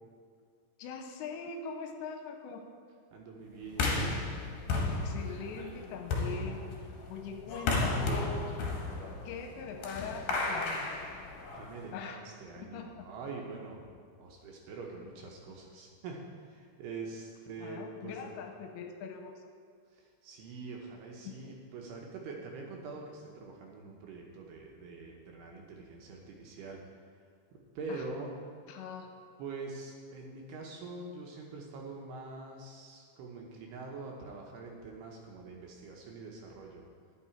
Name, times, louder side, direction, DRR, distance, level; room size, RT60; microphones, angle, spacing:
voice 1, 0.8-2.7 4.9-6.6 7.1-8.4 9.3-10.9 11.9-12.2 12.6-12.9 17.6-19.3 21.2-21.5 27.9-28.0 28.7-29.1, left 5 dB, 85° left, 4 dB, 2.8 m, -42 dB
voice 2, 3.1-4.2 11.5-13.9 14.2-18.4 19.9-26.8 27.5-28.3 29.4-36.9, right 3 dB, 75° right, 0 dB, 2.6 m, -44 dB
sound 1, 3.7-11.8, left 3 dB, 65° left, 2.1 m, -34 dB
11.5 x 8.6 x 4.4 m, 2.1 s
omnidirectional pair, 5.3 m